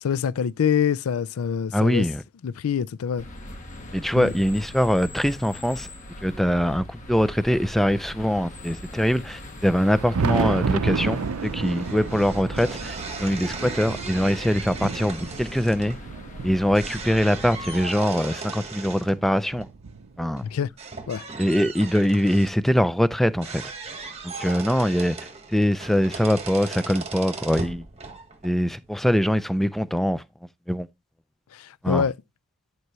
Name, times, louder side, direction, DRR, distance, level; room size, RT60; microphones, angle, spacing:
voice 1, 0.0-2.1 2.4-3.3 4.2-4.3 20.5-20.7 21.1-21.2 31.5-32.1, left 7 dB, 75° left, 0.4 m, -25 dB
voice 2, 1.7-2.2 3.9-5.9 6.2-12.9 13.2-16.0 16.4-19.7 20.2-20.4 21.4-23.6 24.2-25.2 25.5-27.8 28.4-30.2 30.7-30.9 31.8-32.0, equal, ahead, 0.3 m, -23 dB
sound 1, 3.2-17.9, left 1 dB, 35° left, 1.3 m, -40 dB
Thunder, 9.6-18.2 18.8-20.6 21.7-21.8 22.4-22.5 24.3-24.4 25.8-25.9 27.5-27.6, right 5 dB, 80° right, 0.5 m, -31 dB
sound 2, 10.8-29.2, right 4 dB, 30° right, 1.4 m, -38 dB
10.5 x 4.6 x 3.1 m
head